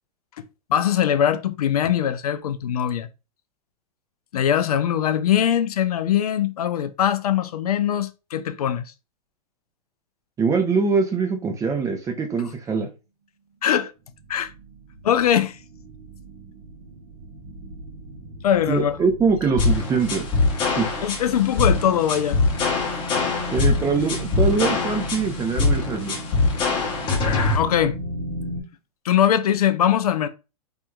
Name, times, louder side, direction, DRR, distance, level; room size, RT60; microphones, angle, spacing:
voice 1, 0.7-3.1 4.3-8.9 13.6-13.9 14.3-14.5 15.0-15.6 18.4-19.0 21.0-22.4 27.5-28.0 29.0-30.3, left 10 dB, 75° left, 0.4 m, -21 dB
voice 2, 10.4-12.9 18.7-20.2 20.8-20.9 23.5-26.2, right 5 dB, 15° right, 0.6 m, -23 dB
sound 1, 14.1-28.6, right 1 dB, 65° right, 0.9 m, -36 dB
sound 2, 19.6-27.6, left 3 dB, 25° left, 0.7 m, -22 dB
2.7 x 2.4 x 2.3 m
hypercardioid pair, 115°, 19 cm